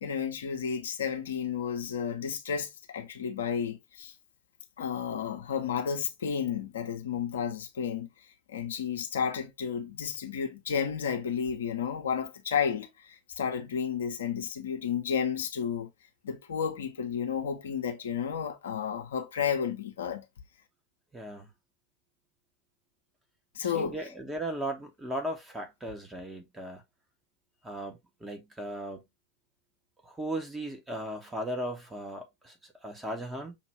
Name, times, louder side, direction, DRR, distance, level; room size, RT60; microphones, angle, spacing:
voice 1, 0.0-4.1 4.8-8.1 8.5-15.9 16.2-20.3 23.5-24.0, left 7 dB, 65° left, 0.8 m, -32 dB
voice 2, 21.1-21.5 23.6-26.8 27.6-29.0 30.0-33.6, right 1 dB, 10° right, 1.1 m, -37 dB
5.6 x 2.6 x 3.2 m
figure-of-eight pair, 90°, 0 cm